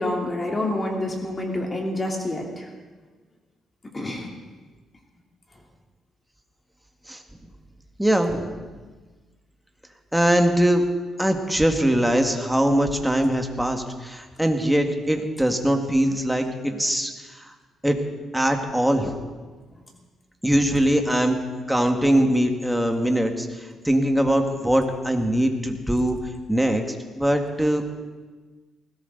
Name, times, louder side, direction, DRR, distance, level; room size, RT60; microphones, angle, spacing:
voice 1, 0.0-2.7 3.9-4.3, left 1 dB, 25° left, 0 dB, 3.2 m, -27 dB
voice 2, 8.0-8.6 10.1-10.9 11.2-17.5 17.8-18.0 18.3-19.2 20.4-21.4 21.7-26.2 26.5-27.8, right 1 dB, 5° right, 4 dB, 2.0 m, -22 dB
20.0 x 17.5 x 4.0 m, 1.3 s
cardioid pair, 90°, 0 cm